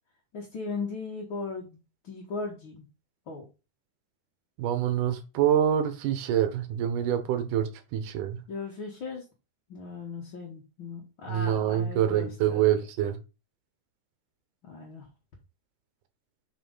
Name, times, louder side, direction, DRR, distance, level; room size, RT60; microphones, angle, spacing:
voice 1, 0.3-2.8 3.3-3.5 8.5-9.2 9.7-12.6 14.6-15.1, left 4 dB, 45° left, -1 dB, 2.1 m, -37 dB
voice 2, 4.6-8.4 11.3-13.2, right 10 dB, 75° right, 8 dB, 2.6 m, -26 dB
6.1 x 5.9 x 5.6 m, 0.31 s
omnidirectional pair, 3.8 m